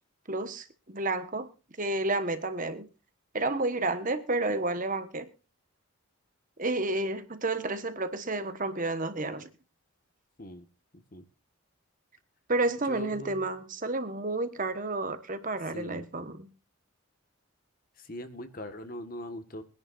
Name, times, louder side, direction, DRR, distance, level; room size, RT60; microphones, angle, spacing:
voice 1, 0.3-1.5 1.8-2.9 3.3-5.3 6.6-9.5 12.5-16.5, right 2 dB, 40° right, 1.4 m, -31 dB
voice 2, 12.9-13.5 15.7-16.1 18.0-19.6, left 1 dB, 40° left, 1.6 m, -41 dB
22.5 x 10.5 x 2.6 m
head